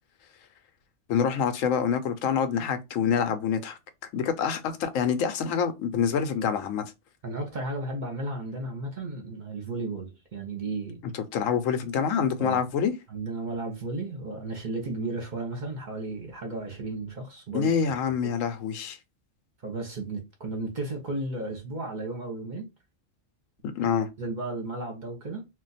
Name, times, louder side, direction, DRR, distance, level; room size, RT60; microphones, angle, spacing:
voice 1, 1.1-3.8 4.1-6.8 11.1-12.9 17.5-19.0 23.8-24.1, left 7 dB, 85° left, 1.0 m, -26 dB
voice 2, 7.2-11.0 12.4-12.6 13.1-18.3 19.6-22.7 24.2-25.5, right 2 dB, 45° right, 0.7 m, -34 dB
2.4 x 2.2 x 3.9 m
omnidirectional pair, 1.3 m